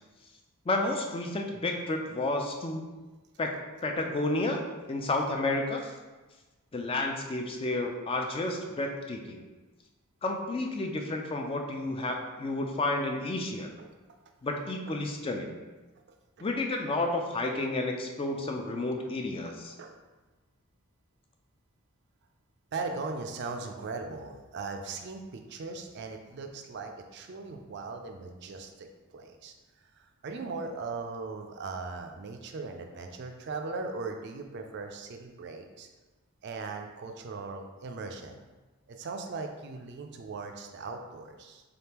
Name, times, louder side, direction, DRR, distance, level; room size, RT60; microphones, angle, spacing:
voice 1, 0.7-2.9 3.4-3.5 3.8-4.6 4.9-5.9 6.7-9.4 10.2-13.7 14.4-15.5 16.4-19.7, left 2 dB, 25° left, 2 dB, 0.3 m, -31 dB
voice 2, 22.7-29.5 29.9-35.9 36.4-38.4 38.9-41.6, right 3 dB, 50° right, 4 dB, 0.4 m, -39 dB
3.9 x 3.5 x 2.9 m, 1.2 s
head